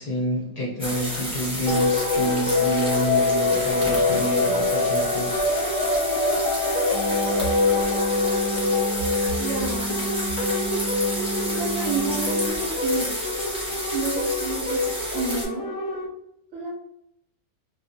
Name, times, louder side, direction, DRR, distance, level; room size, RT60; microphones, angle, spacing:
voice 1, 0.0-5.3, equal, 50° left, -5 dB, 0.4 m, -28 dB
sound 1, 0.8-15.4, equal, 5° right, 0.4 m, -31 dB
sound 2, 1.7-16.1, left 3 dB, 65° left, 0.8 m, -25 dB
sound 3, 6.9-12.5, right 3 dB, 80° right, 1.1 m, -32 dB
voice 2, 9.4-10.9 11.1-13.3 13.9-14.8 15.1-15.7 16.5-16.7, right 4 dB, 60° right, -6 dB, 0.9 m, -30 dB
2.3 x 2.1 x 2.6 m, 0.76 s
omnidirectional pair, 1.5 m